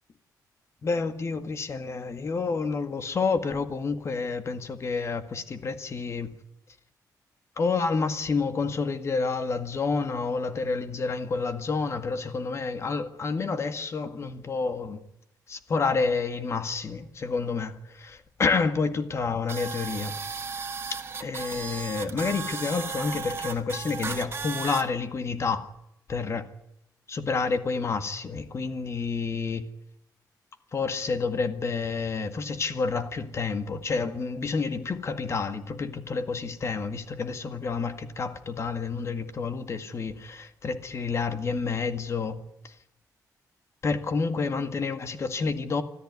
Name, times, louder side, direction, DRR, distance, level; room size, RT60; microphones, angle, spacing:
voice 1, 0.8-6.3 7.6-15.0 15.5-20.2 21.2-25.7 26.1-26.4 27.1-29.6 30.7-42.4 42.6-42.7 43.8-45.8, left 4 dB, 40° left, 1.9 m, -29 dB
sound 1, 19.5-24.8, right 5 dB, 35° right, 1.8 m, -35 dB
24.5 x 14.0 x 9.5 m
cardioid pair, 125°, 7 cm